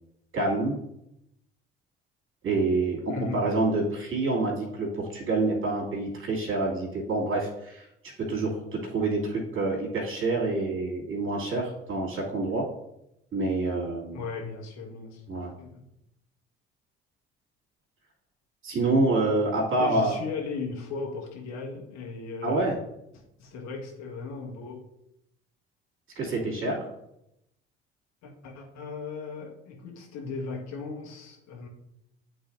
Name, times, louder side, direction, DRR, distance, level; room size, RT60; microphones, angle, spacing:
voice 1, 0.3-0.8 2.4-3.0 3.3-7.8 8.3-12.6 13.3-14.2 15.3-15.5 18.6-20.1 22.4-22.7 26.2-26.8, right 2 dB, 40° right, -3 dB, 2.7 m, -27 dB
voice 2, 3.1-3.4 14.1-15.2 15.6-15.8 19.8-22.7 23.1-24.9 28.2-31.7, left 4 dB, 60° left, -1 dB, 1.7 m, -37 dB
11.5 x 4.0 x 2.6 m, 0.83 s
figure-of-eight pair, 50°, 31 cm